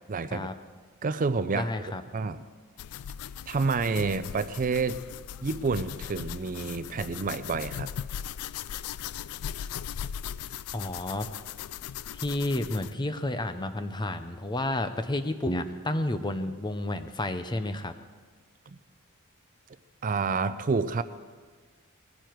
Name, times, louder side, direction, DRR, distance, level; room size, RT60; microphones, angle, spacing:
voice 1, 0.1-0.5 1.0-1.7 2.1-2.4 3.5-5.0 5.4-7.9 20.0-21.0, right 4 dB, 40° right, 13 dB, 0.5 m, -28 dB
voice 2, 1.5-2.0 10.7-11.3 12.2-17.9, left 1 dB, 20° left, 9 dB, 0.7 m, -31 dB
sound 1, 2.8-12.9, left 9 dB, 85° left, 0.4 m, -38 dB
20.0 x 15.0 x 4.6 m, 1.5 s
head